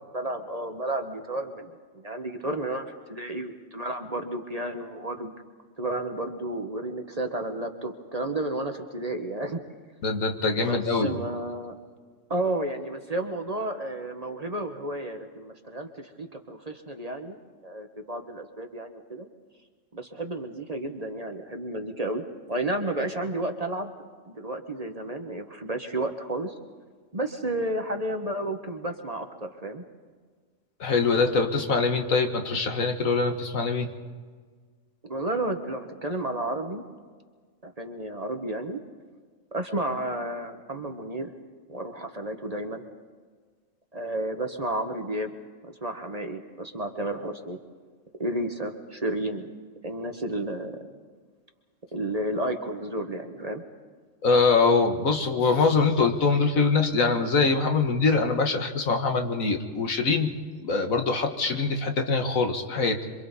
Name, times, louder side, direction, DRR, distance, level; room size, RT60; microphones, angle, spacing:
voice 1, 0.1-5.3 5.8-9.6 10.6-11.7 12.3-17.4 17.6-19.3 19.9-23.9 24.3-26.5 27.1-29.8 35.0-36.8 37.6-38.8 39.5-41.3 41.7-42.8 43.9-45.3 45.6-47.6 48.2-49.5 49.8-51.0 51.9-53.6, right 1 dB, 30° right, 5 dB, 1.3 m, -32 dB
voice 2, 10.0-11.1 30.8-33.9 54.2-60.3 60.6-63.0, left 4 dB, 75° left, 5 dB, 1.9 m, -23 dB
26.5 x 24.5 x 4.2 m, 1.6 s
omnidirectional pair, 1.4 m